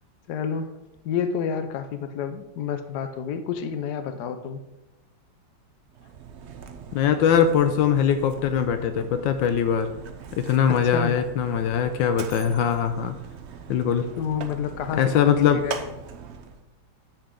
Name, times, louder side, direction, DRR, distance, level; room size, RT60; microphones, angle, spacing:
voice 1, 0.3-0.7 1.0-4.6 10.7-11.2 14.2-15.9, left 7 dB, 65° left, 9 dB, 1.2 m, -29 dB
Mechanisms, 5.9-16.6, right 6 dB, 70° right, 0.6 m, -41 dB
voice 2, 6.9-9.9 10.4-13.1 13.7-14.1 15.0-15.6, left 8 dB, 80° left, 9 dB, 1.3 m, -21 dB
9.2 x 7.5 x 3.8 m, 0.95 s
omnidirectional pair, 2.1 m